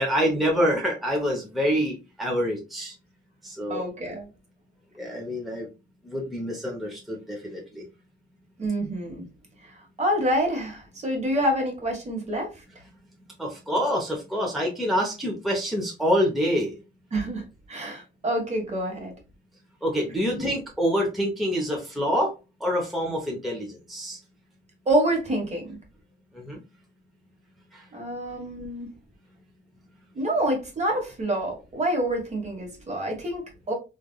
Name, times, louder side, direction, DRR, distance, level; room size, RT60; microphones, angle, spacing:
voice 1, 0.0-2.9 3.4-3.8 5.0-5.7 6.1-7.8 13.4-16.7 19.8-22.3 22.6-24.2 26.3-26.6, equal, ahead, -1 dB, 0.8 m, -26 dB
voice 2, 3.7-4.3 8.6-9.2 10.0-12.5 17.1-17.4 17.7-19.1 20.2-20.5 24.9-25.7 27.9-28.9 30.1-33.7, right 1 dB, 35° right, 1 dB, 1.3 m, -27 dB
3.2 x 2.4 x 2.2 m, 0.29 s
cardioid pair, 90°, 20 cm